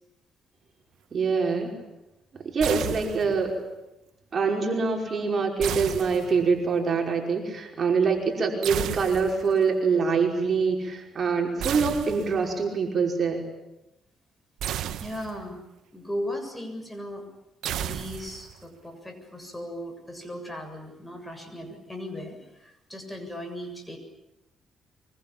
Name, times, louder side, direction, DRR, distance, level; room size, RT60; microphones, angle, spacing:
voice 1, 1.1-1.8 2.3-3.5 4.3-13.4, right 5 dB, 45° right, 2 dB, 5.4 m, -25 dB
sound 1, 2.6-3.5 5.6-6.7 8.6-9.6 11.6-12.6 14.6-15.6 17.6-18.6, right 11 dB, 80° right, 1.2 m, -33 dB
voice 2, 15.0-15.6 15.9-17.2 17.8-24.0, left 1 dB, 10° left, 5 dB, 7.2 m, -37 dB
25.0 x 24.0 x 9.0 m, 0.93 s
cardioid pair, 90°, 0 cm